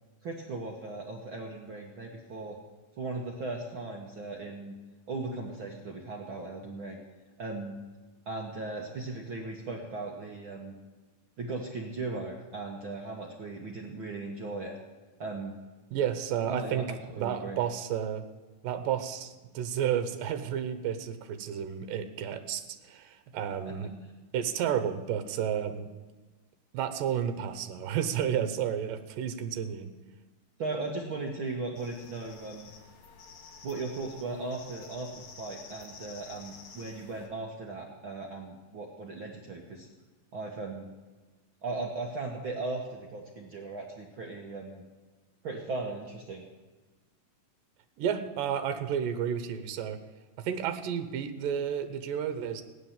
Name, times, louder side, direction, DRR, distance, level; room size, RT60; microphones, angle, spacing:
voice 1, 0.2-2.6 3.0-4.7 5.1-7.0 7.4-7.8 8.2-10.7 11.4-14.8 15.2-15.5 16.5-17.6 30.6-32.7 33.6-39.9 40.3-40.9 41.6-44.8 45.4-46.4, right 3 dB, 55° right, 0 dB, 1.5 m, -37 dB
voice 2, 15.9-18.3 18.6-23.9 24.3-25.9 26.7-29.9 48.0-50.0 50.4-52.6, right 9 dB, 80° right, 10 dB, 2.6 m, -31 dB
sound 1, 31.8-37.3, left 5 dB, 80° left, 3.5 m, -50 dB
15.5 x 10.0 x 7.3 m, 1.3 s
omnidirectional pair, 3.9 m